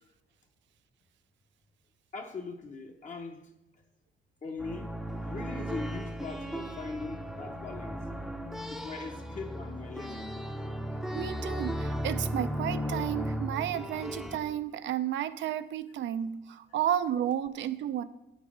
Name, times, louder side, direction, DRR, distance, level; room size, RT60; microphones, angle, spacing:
voice 1, 2.1-3.5 4.4-5.0 5.2-8.0 8.7-10.6, left 3 dB, 40° left, 0.7 m, -41 dB
sound 1, 4.6-14.4, equal, ahead, 0.5 m, -36 dB
voice 2, 11.1-18.0, right 10 dB, 65° right, 0.4 m, -32 dB
7.8 x 4.0 x 4.8 m
cardioid pair, 90°, 20 cm